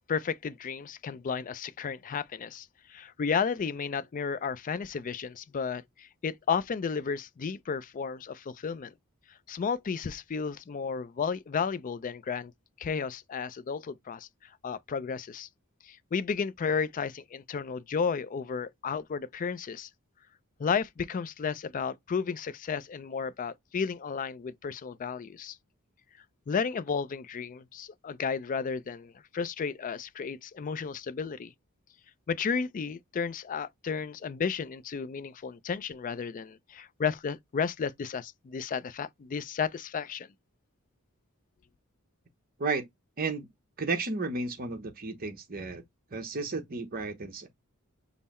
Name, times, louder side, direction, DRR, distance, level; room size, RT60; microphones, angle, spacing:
voice 1, 0.1-8.9 9.5-12.5 12.8-14.3 14.6-15.5 15.8-19.9 20.6-25.6 26.5-31.5 32.3-40.3, left 6 dB, 35° left, 0.3 m, -33 dB
voice 2, 43.2-43.5 43.8-45.8 46.1-47.5, right 3 dB, 40° right, 0.9 m, -33 dB
5.4 x 2.0 x 4.1 m
head